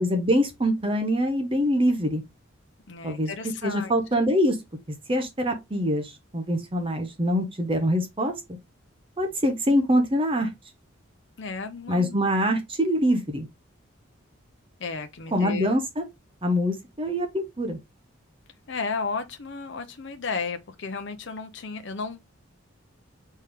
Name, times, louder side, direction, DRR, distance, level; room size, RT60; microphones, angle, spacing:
voice 1, 0.0-2.2 3.0-3.3 3.6-4.6 4.9-8.3 9.2-10.5 11.9-13.5 15.3-16.0 16.4-17.8, equal, 25° right, 0.8 m, -24 dB
voice 2, 2.9-3.9 11.4-12.2 14.8-15.7 18.7-22.2, left 4 dB, 55° left, 0.6 m, -33 dB
4.4 x 3.4 x 3.4 m
head